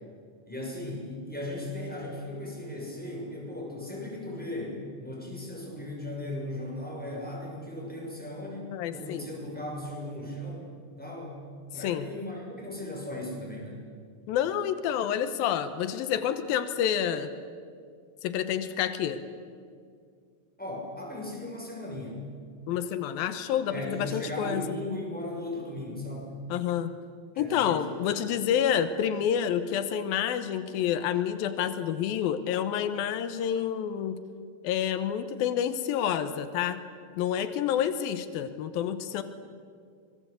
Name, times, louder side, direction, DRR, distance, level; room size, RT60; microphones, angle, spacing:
voice 1, 0.5-11.4 11.7-13.9 20.6-22.2 23.7-26.3 27.3-27.8, left 1 dB, ahead, -2 dB, 5.9 m, -37 dB
voice 2, 8.7-9.3 11.8-12.1 14.3-17.3 18.2-19.2 22.7-24.7 26.5-26.9 27.4-34.2 34.6-36.8 37.2-39.2, left 9 dB, 90° left, 10 dB, 2.8 m, -28 dB
25.5 x 21.0 x 8.3 m, 2.2 s
omnidirectional pair, 4.1 m